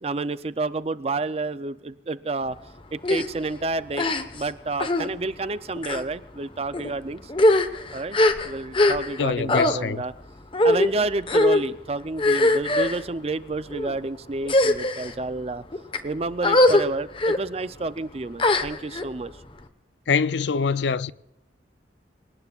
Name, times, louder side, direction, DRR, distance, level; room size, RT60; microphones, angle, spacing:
voice 1, 0.0-2.6 2.9-7.3 7.9-8.2 8.4-10.1 10.6-15.6 16.0-19.3, right 3 dB, 35° right, 0.5 m, -30 dB
sound 1, 3.0-3.3 3.9-4.5 4.8-5.1 5.8-6.0 6.7-6.9 7.3-9.2 9.5-9.7 10.5-10.9 11.3-11.6 12.2-13.0 13.7-13.9 14.4-15.1 15.7-16.0 16.4-16.8 17.2-17.4 18.4-19.0, left 1 dB, 30° left, 1.1 m, -21 dB
voice 2, 9.2-10.0 20.1-21.1, left 5 dB, 75° left, 0.5 m, -24 dB
28.0 x 18.5 x 2.4 m
head